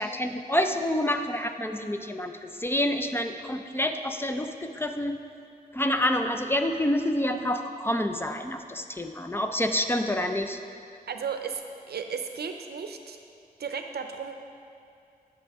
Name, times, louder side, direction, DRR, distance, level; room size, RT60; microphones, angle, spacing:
voice 1, 0.0-5.2 5.7-10.6, left 1 dB, 15° left, 6 dB, 0.4 m, -28 dB
voice 2, 11.1-11.6 11.9-13.2 13.6-14.3, right 6 dB, 85° right, 6 dB, 0.6 m, -34 dB
10.5 x 6.2 x 3.5 m, 2.5 s
wide cardioid pair, 85°, 16 cm